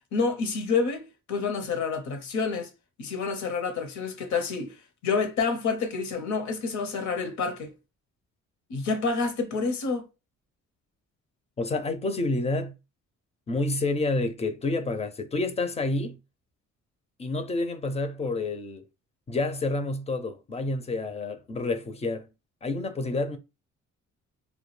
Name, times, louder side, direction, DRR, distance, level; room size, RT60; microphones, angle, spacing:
voice 1, 0.1-2.7 3.0-4.8 5.0-7.7 8.7-10.0, left 4 dB, 70° left, 0.8 m, -28 dB
voice 2, 11.6-12.7 13.5-16.2 17.2-18.8 19.3-22.3 22.6-23.4, left 2 dB, 20° left, 0.4 m, -29 dB
2.2 x 2.1 x 3.1 m
cardioid pair, 90°, 30 cm